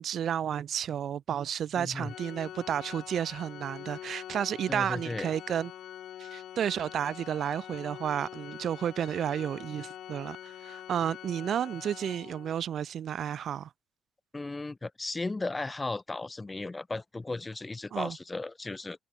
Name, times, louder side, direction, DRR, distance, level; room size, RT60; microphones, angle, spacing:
voice 1, 0.0-5.7 6.2-13.7 17.9-18.2, right 9 dB, 65° right, 0.6 m, -32 dB
voice 2, 1.8-2.1 4.7-5.3 14.3-19.0, left 3 dB, 20° left, 0.7 m, -35 dB
Organ, 2.0-12.8, left 11 dB, 75° left, 1.0 m, -45 dB
cardioid pair, 90°, 0 cm